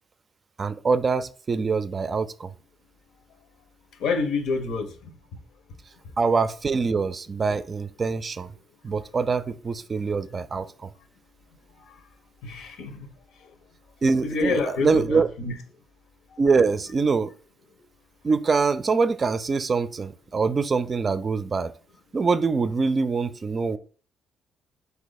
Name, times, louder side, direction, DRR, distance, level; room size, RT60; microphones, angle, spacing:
voice 1, 0.6-2.5 6.2-8.5 8.8-10.9 14.0-15.3 16.4-17.3 18.2-21.7 22.1-23.8, right 4 dB, 35° right, 0.4 m, -24 dB
voice 2, 4.0-5.1 11.7-12.0 12.4-13.1 13.4-13.6 14.2-15.5 16.3-16.4, left 4 dB, 85° left, 1.0 m, -28 dB
4.5 x 2.7 x 4.1 m
cardioid pair, 90°, 0 cm